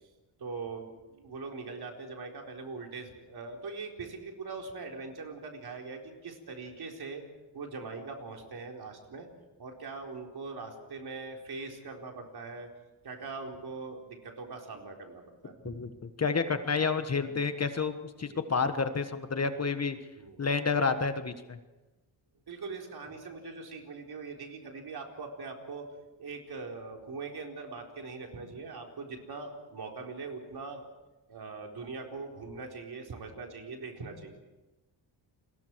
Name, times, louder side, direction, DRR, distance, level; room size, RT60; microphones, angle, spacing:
voice 1, 0.4-7.2 7.5-9.3 9.6-12.7 13.0-15.8 18.2-18.4 20.2-20.4 22.5-25.9 26.2-30.9 31.3-34.4, right 4 dB, 55° right, 1 dB, 4.3 m, -42 dB
voice 2, 16.2-20.0 20.4-21.6, left 5 dB, 35° left, 9 dB, 1.4 m, -29 dB
30.0 x 22.0 x 4.8 m, 1.1 s
cardioid pair, 105°, 44 cm